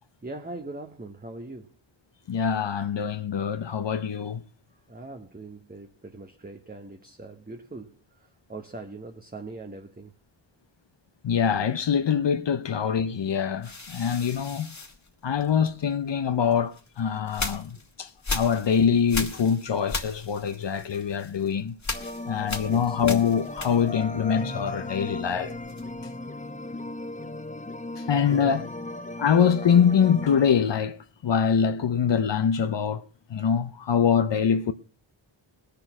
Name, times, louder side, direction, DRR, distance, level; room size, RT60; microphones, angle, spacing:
voice 1, 0.2-1.7 4.9-10.1 22.1-22.4 22.7-23.0 28.3-28.6, right 2 dB, 20° right, 1.0 m, -41 dB
voice 2, 2.3-4.4 11.2-14.7 15.2-21.8 22.3-25.5 28.0-28.7 29.2-34.7, left 7 dB, 65° left, 0.8 m, -24 dB
sound 1, 13.6-15.8 16.5-24.2 24.4-26.1, left 3 dB, 35° left, 1.7 m, -37 dB
sound 2, 21.9-30.5, left 2 dB, 15° left, 0.9 m, -37 dB
19.5 x 6.8 x 5.9 m
wide cardioid pair, 70°, 46 cm